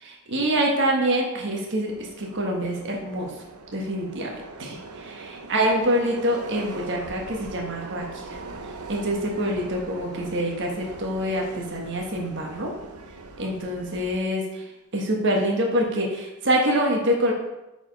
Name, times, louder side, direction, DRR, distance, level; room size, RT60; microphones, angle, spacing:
voice 1, 0.0-3.3 3.7-8.4 8.9-12.7 13.4-17.3, right 1 dB, 55° right, 0 dB, 1.4 m, -26 dB
Subway metro underground, 1.9-14.2, right 3 dB, 90° right, 0.8 m, -41 dB
8.7 x 5.0 x 5.3 m, 0.98 s
head